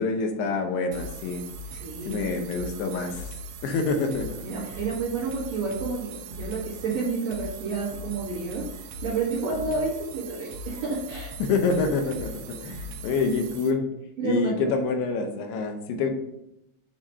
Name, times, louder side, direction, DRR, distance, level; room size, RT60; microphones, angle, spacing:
voice 1, 0.0-1.4 2.1-3.2 3.6-4.3 11.4-13.9 14.2-16.1, left 4 dB, 80° left, 4 dB, 2.7 m, -26 dB
sound 1, 0.9-13.7, right 1 dB, 80° right, 2.5 m, -40 dB
voice 2, 1.7-2.2 4.4-11.3 14.2-14.7, right 4 dB, 60° right, -8 dB, 1.9 m, -30 dB
7.3 x 2.5 x 5.3 m, 0.85 s
omnidirectional pair, 4.8 m